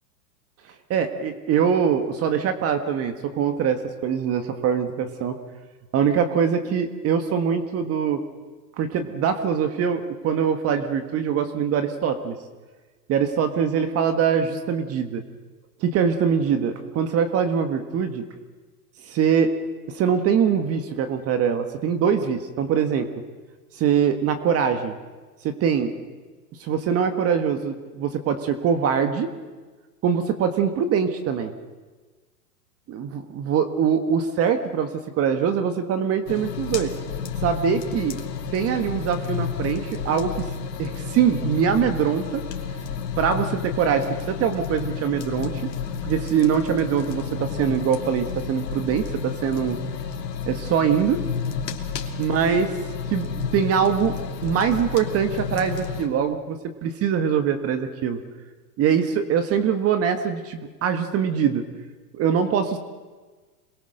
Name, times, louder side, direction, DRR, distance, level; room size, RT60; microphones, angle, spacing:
voice 1, 0.9-5.3 5.9-8.2 8.8-12.4 13.1-15.2 15.8-18.2 19.1-19.5 19.9-23.1 23.7-24.9 25.4-25.9 26.6-29.3 30.0-31.5 32.9-36.9 37.4-38.2 38.5-40.3 40.8-42.4 43.2-45.6 46.0-49.8 50.5-51.2 52.2-52.7 53.1-54.1 54.4-58.2 58.8-61.6 62.1-62.8, right 7 dB, 30° right, 8 dB, 1.6 m, -23 dB
sound 1, 36.3-56.1, left 6 dB, 80° left, 3.0 m, -31 dB
27.0 x 21.5 x 6.7 m, 1.3 s
hypercardioid pair, 125°, 49 cm